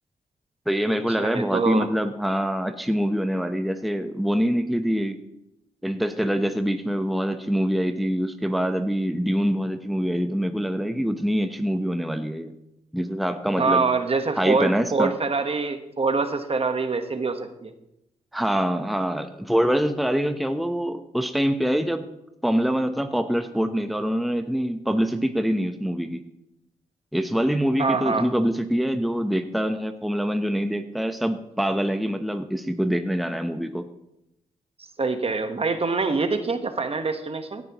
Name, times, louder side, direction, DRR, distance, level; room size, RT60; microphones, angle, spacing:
voice 1, 0.7-5.2 5.8-12.5 12.9-13.8 14.4-15.1 18.3-22.0 22.4-26.2 27.1-33.9, equal, ahead, 7 dB, 0.9 m, -25 dB
voice 2, 1.2-1.9 13.6-17.7 27.8-28.3 35.0-37.6, right 4 dB, 40° right, 7 dB, 1.3 m, -25 dB
17.0 x 10.5 x 3.0 m, 0.86 s
cardioid pair, 55°, 15 cm